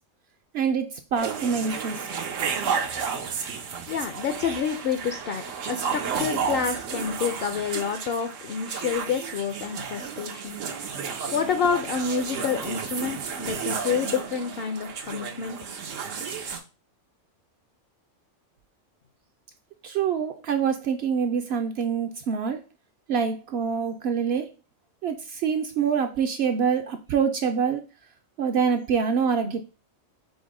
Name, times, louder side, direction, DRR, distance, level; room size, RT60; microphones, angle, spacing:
voice 1, 0.5-0.9 1.1-2.0 19.8-22.6 23.1-24.5 25.0-27.8 28.4-29.6, right 6 dB, 65° right, 5 dB, 0.7 m, -25 dB
sound 1, 1.2-16.6, right 6 dB, 85° right, 1.1 m, -32 dB
voice 2, 3.9-10.6 11.3-15.6, left 6 dB, 60° left, 7 dB, 0.7 m, -28 dB
5.3 x 2.1 x 4.7 m, 0.31 s
omnidirectional pair, 1.3 m